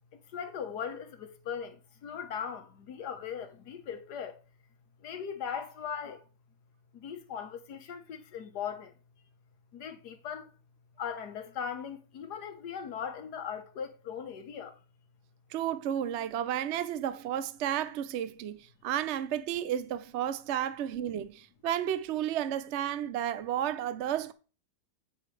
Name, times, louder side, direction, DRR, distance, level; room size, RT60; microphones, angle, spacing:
voice 1, 0.3-1.8 2.0-4.4 5.0-6.2 7.0-8.9 9.7-10.4 11.0-14.7, left 7 dB, 80° left, 1.7 m, -39 dB
voice 2, 15.5-24.3, right 10 dB, 65° right, 0.7 m, -32 dB
9.1 x 8.0 x 3.3 m
omnidirectional pair, 1.7 m